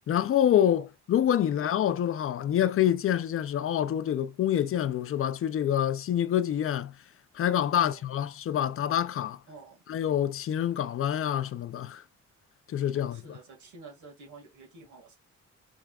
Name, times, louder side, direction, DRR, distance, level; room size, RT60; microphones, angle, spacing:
voice 1, 0.1-6.9 7.3-9.4 9.9-12.0 12.7-13.4, left 10 dB, 45° left, 0.5 m, -26 dB
voice 2, 7.7-8.0 9.5-9.8 12.9-15.2, right 3 dB, 75° right, 2.0 m, -50 dB
4.6 x 3.6 x 2.3 m
cardioid pair, 90°, 30 cm